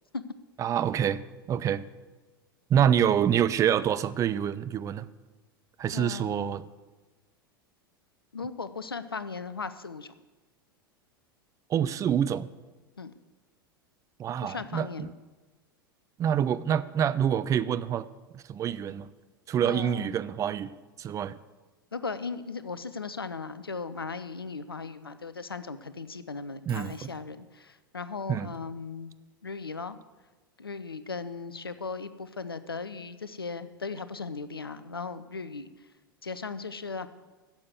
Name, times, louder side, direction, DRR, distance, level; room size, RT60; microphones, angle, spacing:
voice 1, 0.6-1.2 1.5-1.8 2.7-5.1 5.8-6.6 11.7-12.5 14.2-15.1 16.2-18.1 18.3-19.1 19.5-20.7 21.0-21.4 26.7-27.1 28.3-28.5, right 9 dB, 25° right, 16 dB, 0.5 m, -26 dB
voice 2, 5.9-6.6 8.3-10.1 13.0-13.1 14.4-15.1 19.6-20.1 21.9-29.1 29.4-30.0 30.6-35.7 36.2-37.1, left 4 dB, 85° left, 13 dB, 0.6 m, -37 dB
Shatter, 26.7-27.2, right 4 dB, 75° right, 1.8 m, -53 dB
11.5 x 7.5 x 8.1 m, 1.2 s
figure-of-eight pair, 85°, 12 cm